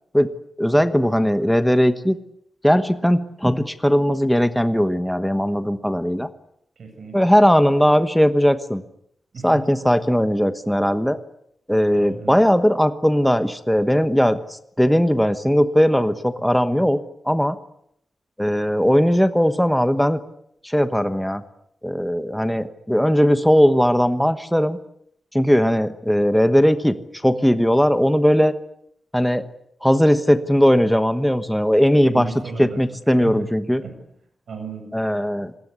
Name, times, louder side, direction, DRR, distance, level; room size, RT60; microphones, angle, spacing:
voice 1, 0.6-2.2 2.6-6.3 7.1-8.8 9.4-11.2 11.7-14.4 14.8-17.0 17.2-17.6 18.4-20.2 20.6-21.4 21.8-24.8 25.3-27.0 27.2-28.5 29.1-29.4 29.8-32.3 32.6-33.8 34.9-35.5, equal, ahead, 9 dB, 1.2 m, -18 dB
voice 2, 6.8-7.2 9.3-9.4 12.0-12.5 32.0-32.8 33.2-33.5 33.8-33.9 34.5-34.9, right 5 dB, 65° right, 6 dB, 7.2 m, -34 dB
27.5 x 21.0 x 8.3 m, 0.72 s
wide cardioid pair, 145°, 0 cm